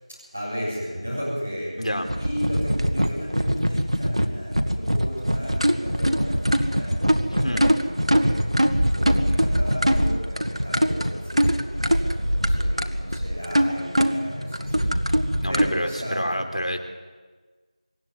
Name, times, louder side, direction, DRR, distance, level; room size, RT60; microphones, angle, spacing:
voice 1, 0.1-1.8 2.2-16.4, equal, 10° right, -10 dB, 4.1 m, -34 dB
voice 2, 1.8-2.1 7.4-7.6 15.4-16.8, equal, 75° left, 5 dB, 3.8 m, -28 dB
sound 1, 2.0-15.7, equal, 60° right, 1.8 m, -22 dB
25.0 x 13.0 x 9.7 m, 1.4 s
figure-of-eight pair, 180°, 4 cm